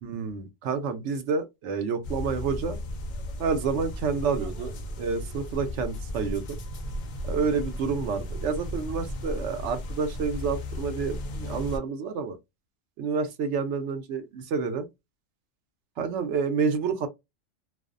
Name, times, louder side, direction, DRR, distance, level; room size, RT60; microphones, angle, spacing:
voice 1, 0.0-2.8 3.4-6.6 7.2-12.4 13.0-14.9 16.0-17.1, right 5 dB, 70° right, 0.8 m, -29 dB
sound 1, 2.0-11.8, left 1 dB, 65° left, 0.4 m, -35 dB
2.5 x 2.0 x 2.4 m
omnidirectional pair, 1.3 m